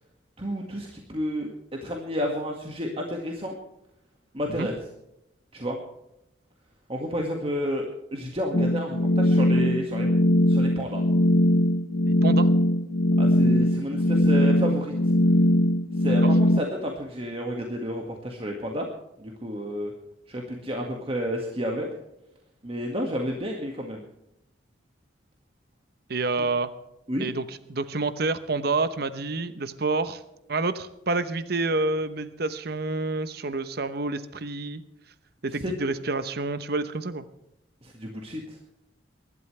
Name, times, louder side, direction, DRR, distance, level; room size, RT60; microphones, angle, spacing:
voice 1, 0.4-1.5 1.8-3.5 4.3-4.8 5.5-5.8 6.9-10.1 10.5-11.0 13.2-14.9 16.0-18.9 19.2-19.9 20.3-21.9 22.6-24.0 27.1-27.3 35.6-35.8 37.8-38.6, equal, 30° right, 0 dB, 1.9 m, -31 dB
sound 1, 8.5-16.6, left 1 dB, 65° left, 1.0 m, -20 dB
voice 2, 12.1-12.5 16.2-16.3 26.1-26.7 27.2-30.2 30.5-34.8 35.4-37.2, right 3 dB, 55° right, 12 dB, 0.9 m, -28 dB
23.5 x 12.0 x 3.3 m, 0.86 s
head